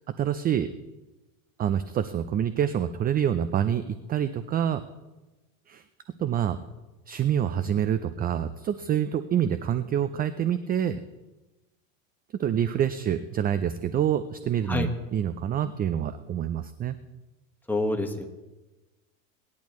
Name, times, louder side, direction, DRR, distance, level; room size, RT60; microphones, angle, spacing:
voice 1, 0.2-0.7 1.6-4.8 5.7-5.8 6.2-6.6 7.1-11.0 12.3-17.0, right 9 dB, 25° right, 12 dB, 0.4 m, -27 dB
voice 2, 17.7-18.3, left 2 dB, 5° left, 4 dB, 1.5 m, -27 dB
19.5 x 10.5 x 3.1 m, 1.1 s
supercardioid pair, 110°, 41 cm